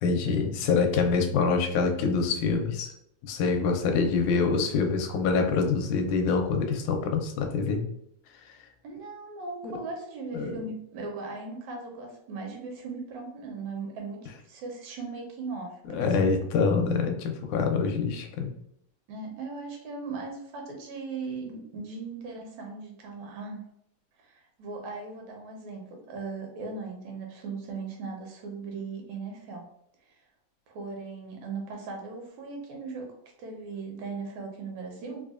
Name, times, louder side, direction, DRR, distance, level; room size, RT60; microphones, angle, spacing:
voice 1, 0.0-2.9 3.3-7.8 8.4-8.6 9.6-9.7 10.3-10.6 15.9-18.5, left 4 dB, 85° left, 4 dB, 1.9 m, -25 dB
voice 2, 4.0-4.5 8.8-16.3 19.1-23.6 24.2-29.6 30.1-30.2 30.7-33.1 33.4-35.2, right 4 dB, 75° right, 1 dB, 2.0 m, -38 dB
4.9 x 2.2 x 2.4 m, 0.73 s
omnidirectional pair, 3.4 m